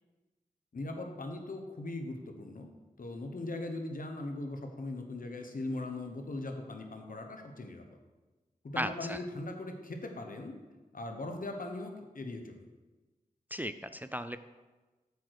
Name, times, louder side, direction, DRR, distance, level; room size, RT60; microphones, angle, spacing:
voice 1, 0.7-2.7 3.0-7.8 8.6-10.6 10.9-12.6, left 2 dB, 70° left, 4 dB, 1.1 m, -39 dB
voice 2, 8.8-9.2 13.5-14.4, equal, 10° right, 11 dB, 0.3 m, -36 dB
8.1 x 4.8 x 6.5 m, 1.2 s
wide cardioid pair, 75°, 15 cm